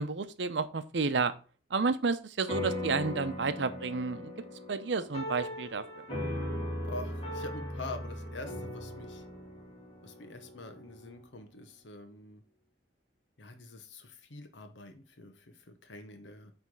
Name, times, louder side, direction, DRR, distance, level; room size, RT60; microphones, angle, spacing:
voice 1, 0.0-1.3 1.7-4.3 4.7-6.0, right 4 dB, 75° right, 0.7 m, -31 dB
sound 1, 2.5-11.2, left 1 dB, 35° left, 2.6 m, -38 dB
voice 2, 6.8-9.2 10.0-12.4 13.4-16.5, left 2 dB, 85° left, 1.0 m, -45 dB
8.4 x 3.4 x 4.7 m
head